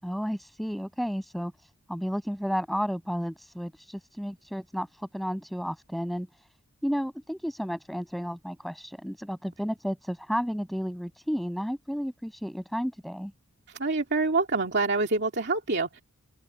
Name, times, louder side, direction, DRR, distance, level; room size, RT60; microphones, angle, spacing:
voice 1, 0.0-6.3 6.8-13.3, equal, ahead, 6.3 m, -32 dB
voice 2, 13.8-16.0, right 3 dB, 50° right, 2.5 m, -26 dB
head